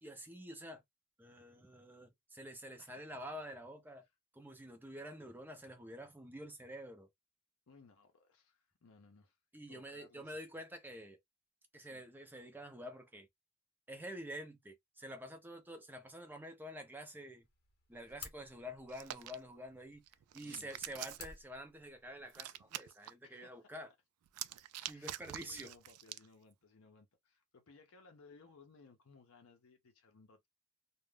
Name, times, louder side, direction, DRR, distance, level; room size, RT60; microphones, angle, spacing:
voice 1, 0.0-0.8 1.2-4.0 4.3-7.1 9.5-11.2 11.7-13.3 13.9-17.5 17.9-20.0 20.3-23.9 24.8-25.7, equal, 10° right, 0.5 m, -48 dB
voice 2, 7.7-9.4 9.7-10.4 11.8-12.0 20.4-20.9 23.2-23.7 24.9-30.5, left 4 dB, 65° left, 0.6 m, -62 dB
sound 1, 17.4-22.4, left 6 dB, 45° left, 0.9 m, -57 dB
Hands, 18.9-19.3 20.1-21.3 22.3-23.1 24.3-26.3, right 13 dB, 80° right, 0.3 m, -45 dB
2.4 x 2.1 x 3.2 m
head